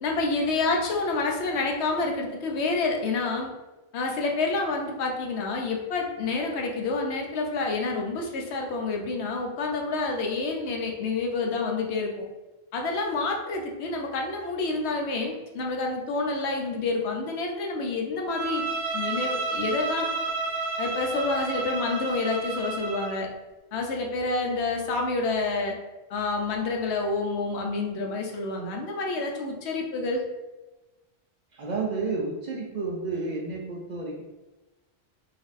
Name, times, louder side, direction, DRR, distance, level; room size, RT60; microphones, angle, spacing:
voice 1, 0.0-3.5 3.9-12.1 12.7-18.7 18.9-20.1 20.8-23.3 23.7-25.7 26.1-30.2, left 3 dB, 85° left, 1 dB, 0.9 m, -28 dB
Bowed string instrument, 18.3-23.2, right 3 dB, 85° right, 1.0 m, -31 dB
voice 2, 31.5-34.2, right 3 dB, 55° right, -1 dB, 0.5 m, -31 dB
4.1 x 2.6 x 2.5 m, 1.1 s
omnidirectional pair, 1.1 m